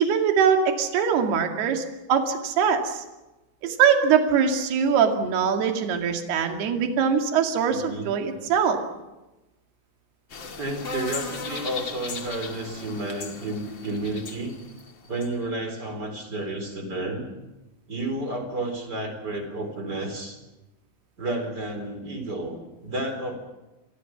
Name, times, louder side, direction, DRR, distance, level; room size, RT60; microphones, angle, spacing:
voice 1, 0.0-1.8 2.1-3.0 3.6-8.8, right 7 dB, 55° right, 4 dB, 3.9 m, -22 dB
voice 2, 7.7-8.1 10.6-14.6 15.0-17.3 17.9-20.4 21.2-22.6 22.8-23.4, right 2 dB, 20° right, 6 dB, 3.7 m, -31 dB
sound 1, 10.3-15.3, left 4 dB, 75° left, 1.1 m, -37 dB
28.5 x 25.0 x 6.0 m, 1.0 s
omnidirectional pair, 6.0 m